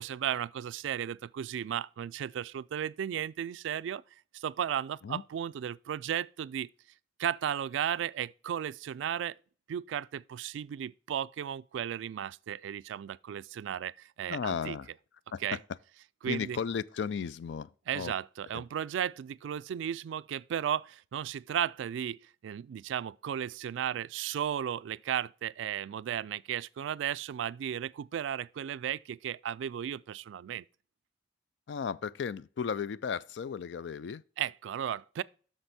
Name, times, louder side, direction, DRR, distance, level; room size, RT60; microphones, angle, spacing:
voice 1, 0.0-4.0 4.3-6.7 7.2-9.4 9.7-14.8 15.4-15.6 16.2-16.6 17.9-30.6 34.4-35.2, right 9 dB, 80° right, 0.3 m, -35 dB
voice 2, 14.3-14.9 15.3-15.6 16.3-18.1 18.5-18.6 31.7-34.2, left 6 dB, 70° left, 0.4 m, -35 dB
7.8 x 6.5 x 4.2 m
head